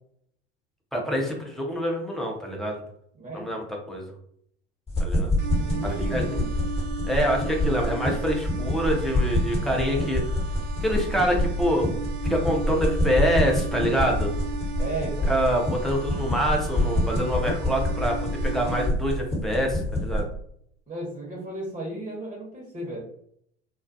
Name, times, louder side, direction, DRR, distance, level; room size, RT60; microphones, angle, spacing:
voice 1, 0.9-2.8 3.3-4.0 5.0-5.3 6.1-6.2 7.0-10.2 10.8-11.9 12.3-14.3 15.3-18.2 18.4-20.3, equal, ahead, -1 dB, 0.8 m, -26 dB
voice 2, 3.1-3.6 5.6-6.5 14.8-15.3 20.9-23.0, right 2 dB, 20° right, -4 dB, 1.0 m, -34 dB
sound 1, 4.9-20.2, left 1 dB, 15° left, 1.2 m, -27 dB
sound 2, 5.4-18.9, right 6 dB, 80° right, 0.6 m, -37 dB
2.3 x 2.2 x 2.6 m, 0.67 s
hypercardioid pair, 70°, 34 cm